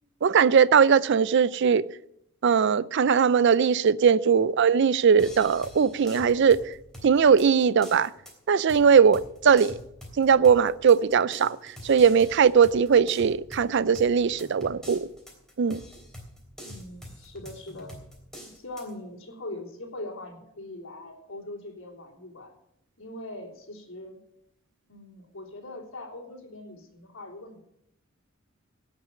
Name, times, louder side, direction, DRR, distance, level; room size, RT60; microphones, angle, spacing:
voice 1, 0.2-1.9 2.4-6.7 7.0-8.1 8.5-9.8 10.2-15.1 15.6-15.8, right 6 dB, 60° right, 0.4 m, -20 dB
sound 1, 5.2-18.9, equal, 5° left, 3.3 m, -46 dB
voice 2, 16.6-17.9 18.4-22.5 23.0-24.2 24.9-27.6, left 1 dB, 70° left, 3.6 m, -41 dB
17.0 x 6.2 x 7.4 m
head